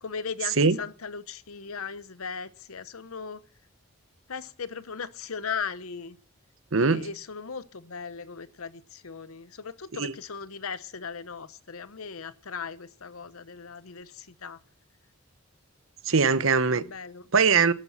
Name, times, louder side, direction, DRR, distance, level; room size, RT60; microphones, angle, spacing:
voice 1, 0.0-3.4 4.3-6.2 6.8-14.6 16.9-17.2, left 6 dB, 80° left, 0.9 m, -38 dB
voice 2, 6.7-7.1 9.9-10.1 16.0-16.8 17.3-17.7, right 5 dB, 65° right, 0.9 m, -21 dB
12.0 x 9.8 x 7.3 m
head